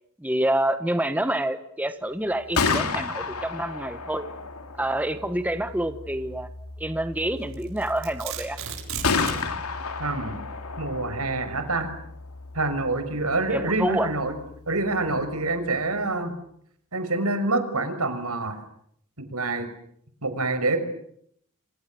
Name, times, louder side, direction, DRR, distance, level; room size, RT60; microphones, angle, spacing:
voice 1, 0.2-4.2 4.8-6.5 6.8-8.6 13.5-14.1, right 1 dB, 5° right, 9 dB, 1.3 m, -27 dB
Gunshot gunfire, 2.3-16.1, left 4 dB, 75° left, 3.1 m, -33 dB
Domestic sounds home sounds, 7.5-9.5, right 8 dB, 65° right, 6.8 m, -35 dB
voice 2, 10.0-10.4 10.8-11.9 12.5-14.4 14.7-16.3 16.9-18.6 19.2-19.7 20.2-20.8, right 2 dB, 80° right, 9 dB, 6.1 m, -26 dB
28.5 x 27.0 x 7.8 m, 0.70 s
head